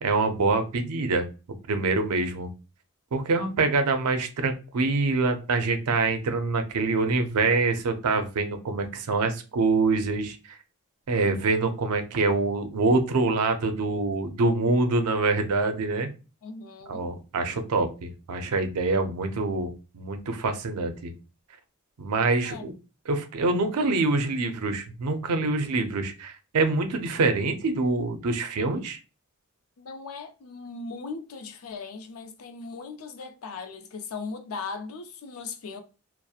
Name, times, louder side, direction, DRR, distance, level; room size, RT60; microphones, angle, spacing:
voice 1, 0.0-1.3 1.7-2.5 3.1-10.4 11.1-16.1 16.9-21.1 22.0-22.7 23.1-29.0, right 3 dB, 85° right, 0.5 m, -25 dB
voice 2, 16.4-17.1 22.4-22.7 29.8-35.8, left 4 dB, 65° left, 0.4 m, -38 dB
2.7 x 2.0 x 2.3 m
head